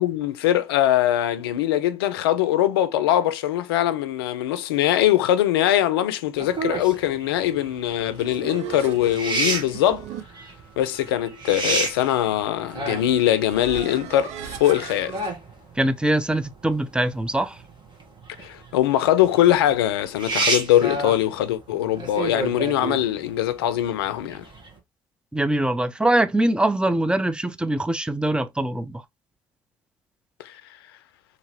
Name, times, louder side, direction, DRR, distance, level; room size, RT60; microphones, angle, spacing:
voice 1, 0.0-10.1 10.8-15.2 18.4-24.5 30.4-30.6, left 12 dB, 85° left, 0.4 m, -22 dB
sound 1, 6.4-24.8, right 3 dB, 40° right, 1.3 m, -31 dB
sound 2, 7.8-15.3, right 8 dB, 70° right, 0.5 m, -39 dB
voice 2, 15.8-17.6 25.3-29.0, right 1 dB, 10° right, 0.5 m, -23 dB
2.9 x 2.8 x 2.7 m
hypercardioid pair, 60°, 12 cm